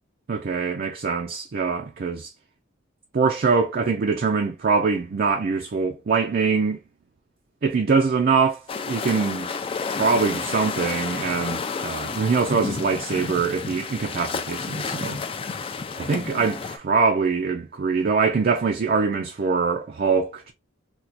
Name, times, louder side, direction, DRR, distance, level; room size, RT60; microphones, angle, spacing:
voice 1, 0.3-2.3 3.1-6.8 7.6-9.5 9.9-15.2 16.1-20.5, right 5 dB, 50° right, 0.4 m, -23 dB
sound 1, 8.7-16.8, left 5 dB, 25° left, 0.3 m, -31 dB
4.3 x 2.2 x 2.5 m
head